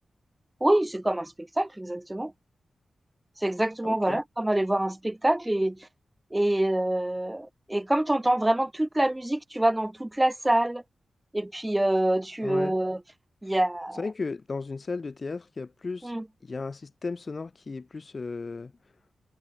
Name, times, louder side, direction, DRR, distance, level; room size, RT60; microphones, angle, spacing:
voice 1, 0.6-2.3 3.4-5.9 6.3-10.8 11.3-13.0 13.4-14.0 16.0-16.2, right 1 dB, 10° right, 6.4 m, -26 dB
voice 2, 3.8-4.2 12.4-12.7 14.0-16.1 16.4-18.7, left 4 dB, 35° left, 2.9 m, -35 dB
wide cardioid pair, 160°, 0 cm